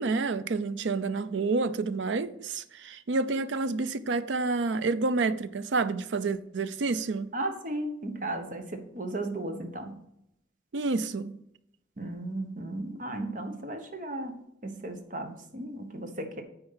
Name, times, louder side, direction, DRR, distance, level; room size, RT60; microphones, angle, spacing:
voice 1, 0.0-7.3 10.7-11.3, right 3 dB, 80° right, 0.5 m, -29 dB
voice 2, 7.3-9.9 12.0-14.3 14.6-16.4, right 1 dB, 45° right, 1.0 m, -35 dB
9.0 x 4.5 x 5.7 m
head